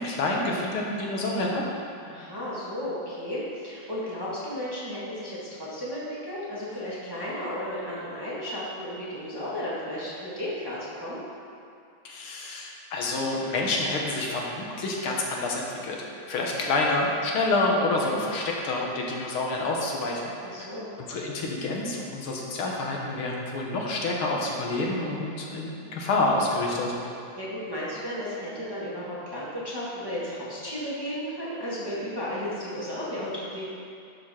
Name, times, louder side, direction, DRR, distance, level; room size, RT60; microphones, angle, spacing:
voice 1, 0.0-1.6 12.0-16.0 16.3-20.3 21.0-26.9 28.2-28.3, left 2 dB, 80° left, -1 dB, 2.0 m, -28 dB
voice 2, 2.0-11.2 20.4-20.9 27.3-33.7, equal, 10° right, -8 dB, 1.5 m, -34 dB
11.0 x 5.7 x 4.3 m, 2.5 s
omnidirectional pair, 2.3 m